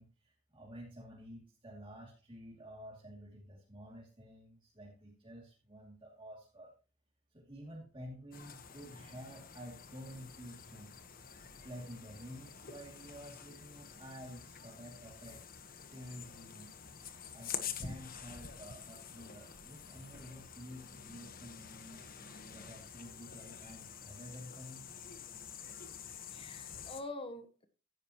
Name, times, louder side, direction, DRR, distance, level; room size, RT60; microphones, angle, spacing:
voice 1, 0.0-6.7 7.3-11.0 11.3-15.4 15.9-16.7 17.3-22.1 22.5-24.9, equal, 25° right, -4 dB, 2.7 m, -51 dB
sound 1, 8.3-27.0, left 7 dB, 45° left, 1.3 m, -48 dB
voice 2, 26.1-27.7, left 2 dB, 30° left, 8 dB, 1.1 m, -46 dB
15.5 x 9.9 x 3.1 m, 0.34 s
head